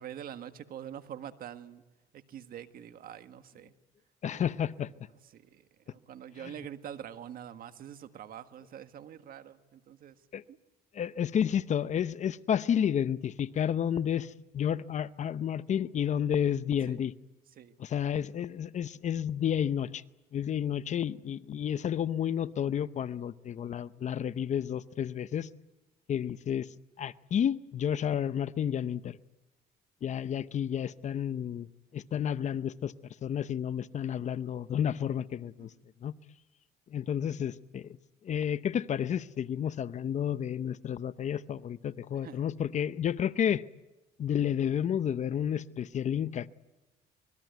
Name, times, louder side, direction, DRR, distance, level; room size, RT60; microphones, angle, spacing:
voice 1, 0.0-1.8 2.1-3.7 4.3-4.4 5.3-10.1 10.5-10.6 16.9-17.0 17.6-17.7 42.2-42.5, right 10 dB, 60° right, 10 dB, 1.6 m, -45 dB
voice 2, 4.2-4.9 6.4-6.5 10.3-10.4 10.9-17.1 17.8-20.0 20.3-25.5 26.1-26.7 27.0-29.2 30.0-31.7 31.9-32.9 33.2-35.7 36.0-36.1 36.9-38.0 38.2-43.6 44.2-46.5, left 9 dB, 45° left, 15 dB, 0.8 m, -31 dB
26.0 x 21.0 x 9.3 m, 1.1 s
cardioid pair, 110°, 17 cm